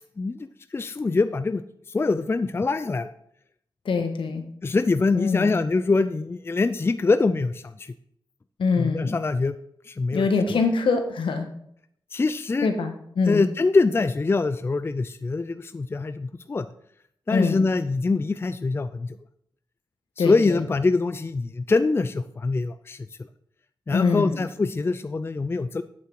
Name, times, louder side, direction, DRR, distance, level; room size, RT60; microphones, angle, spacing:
voice 1, 0.2-0.5 0.7-1.6 1.9-3.1 4.6-7.9 8.8-9.6 9.9-10.6 12.1-12.7 13.3-16.7 17.3-19.2 20.2-23.3 23.9-25.8, left 3 dB, 30° left, 12 dB, 0.4 m, -24 dB
voice 2, 3.8-4.5 5.1-5.5 8.6-9.2 10.1-11.5 12.6-13.4 17.3-17.6 20.2-20.5 23.9-24.4, left 4 dB, 80° left, 5 dB, 1.4 m, -23 dB
8.5 x 7.5 x 4.6 m, 0.69 s
wide cardioid pair, 80°, 9 cm